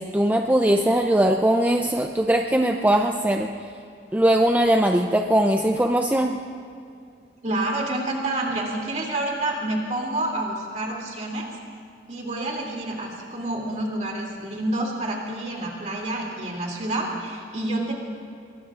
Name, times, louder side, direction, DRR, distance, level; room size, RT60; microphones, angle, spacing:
voice 1, 0.0-3.5 4.1-6.4, right 1 dB, 10° right, 3 dB, 0.4 m, -20 dB
voice 2, 7.4-11.5 12.1-17.9, right 1 dB, 40° right, -1 dB, 2.7 m, -28 dB
23.0 x 22.0 x 2.5 m, 2.4 s
head